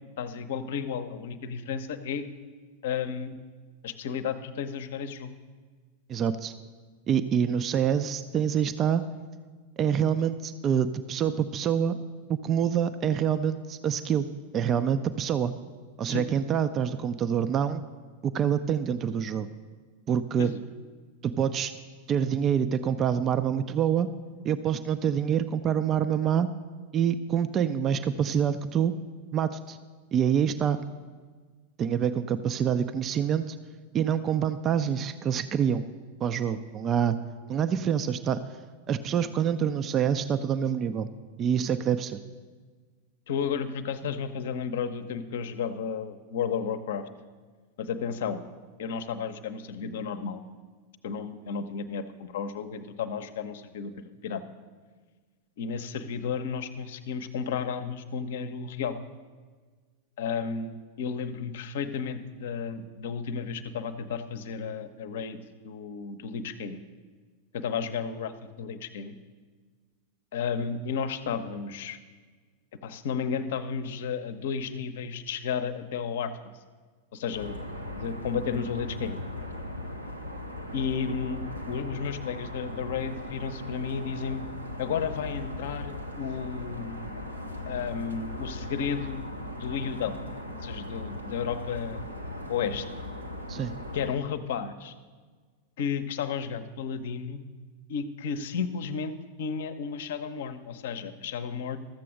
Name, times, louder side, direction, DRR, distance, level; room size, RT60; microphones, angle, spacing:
voice 1, 0.2-2.2 2.8-3.3 3.8-5.3 16.1-16.3 20.4-20.6 43.3-47.0 47.8-48.4 48.8-50.4 51.0-53.9 54.2-54.4 55.6-59.0 60.2-65.4 65.6-66.8 67.5-68.3 68.6-69.1 70.3-72.0 72.8-76.3 77.1-77.5 77.9-79.2 80.7-84.5 84.8-87.0 87.7-89.2 89.5-90.3 90.6-92.0 92.5-92.9 93.9-94.9 95.8-97.4 97.9-99.1 99.4-101.8, left 6 dB, 55° left, 10 dB, 0.7 m, -33 dB
voice 2, 6.1-6.5 7.1-9.0 9.8-12.0 12.4-14.3 14.5-15.5 16.0-17.8 18.2-19.5 20.1-20.5 21.2-21.7 22.1-24.1 24.4-26.5 26.9-28.9 29.3-29.8 30.1-30.8 31.8-33.6 33.9-35.8 36.2-37.2 37.5-38.4 38.9-41.1 41.4-42.2 93.5-93.7, right 8 dB, 30° right, 11 dB, 0.4 m, -26 dB
sound 1, 77.3-94.1, left 1 dB, 90° right, 1.1 m, -38 dB
13.0 x 7.6 x 6.3 m, 1.5 s
figure-of-eight pair, 90°, 0 cm